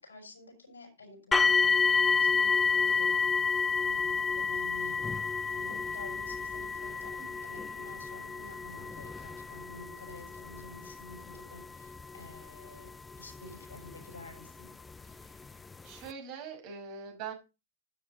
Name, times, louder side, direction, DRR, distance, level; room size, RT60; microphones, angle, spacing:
voice 1, 0.0-3.3 3.8-5.0 5.5-12.9 13.2-14.7, left 2 dB, 75° left, 4 dB, 6.6 m, -50 dB
sound 1, 1.3-14.2 15.0-15.1 15.7-15.8, left 5 dB, 15° left, 0.6 m, -30 dB
voice 2, 15.1-17.3, right 6 dB, 45° right, 3 dB, 5.7 m, -43 dB
12.5 x 10.0 x 3.9 m, 0.28 s
figure-of-eight pair, 90°, 0 cm